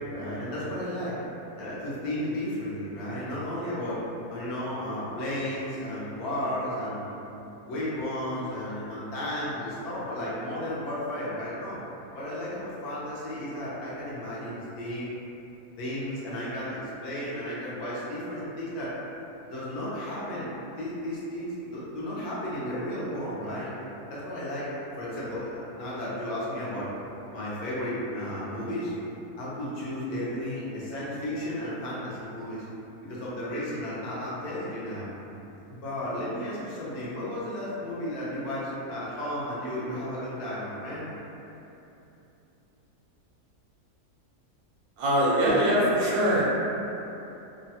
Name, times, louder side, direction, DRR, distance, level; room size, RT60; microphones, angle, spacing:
voice 1, 0.1-1.1 1.6-4.0 4.3-7.1 7.7-11.8 12.1-15.1 15.8-18.9 19.5-20.5 20.8-23.7 24.1-24.7 25.0-26.9 27.3-28.9 29.4-32.6 33.0-35.1 35.7-41.1, left 1 dB, 70° left, -8 dB, 1.2 m, -33 dB
voice 2, 45.0-46.4, equal, 70° right, -6 dB, 1.0 m, -22 dB
3.1 x 2.2 x 2.7 m, 2.9 s
omnidirectional pair, 1.7 m